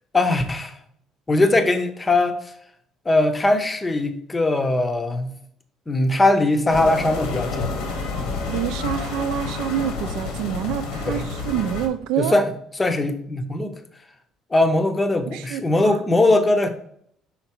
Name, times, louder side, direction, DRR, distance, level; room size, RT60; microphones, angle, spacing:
voice 1, 0.1-0.8 1.3-2.4 3.1-5.3 5.9-7.8 8.2-8.3 11.1-11.2 12.2-12.5 12.8-13.7 14.5-16.7, left 2 dB, 15° left, 7 dB, 0.6 m, -20 dB
sound 1, 6.7-11.9, left 4 dB, 80° left, 1.2 m, -29 dB
voice 2, 8.5-12.4 15.3-16.0, right 10 dB, 85° right, 11 dB, 0.5 m, -27 dB
5.8 x 3.9 x 4.4 m, 0.66 s
cardioid pair, 165°, 0 cm